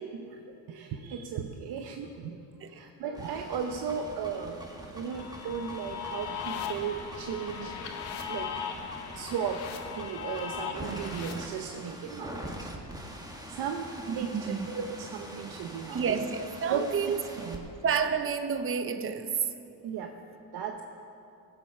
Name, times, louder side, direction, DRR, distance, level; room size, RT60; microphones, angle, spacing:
voice 1, 0.0-2.4 2.7-4.7 4.9-7.8 8.2-8.5 9.1-9.7 10.0-12.7 13.5-16.2 16.7-17.6 19.8-20.1 20.5-20.8, right 7 dB, 60° right, 4 dB, 0.9 m, -36 dB
sound 1, 3.1-17.6, equal, 10° right, 1.7 m, -44 dB
sound 2, 5.1-11.3, left 7 dB, 90° left, 1.1 m, -38 dB
voice 2, 14.1-14.7 15.9-17.2 17.8-19.4, right 6 dB, 30° right, 9 dB, 0.8 m, -30 dB
15.5 x 7.5 x 5.5 m, 2.7 s
supercardioid pair, 70°, 43 cm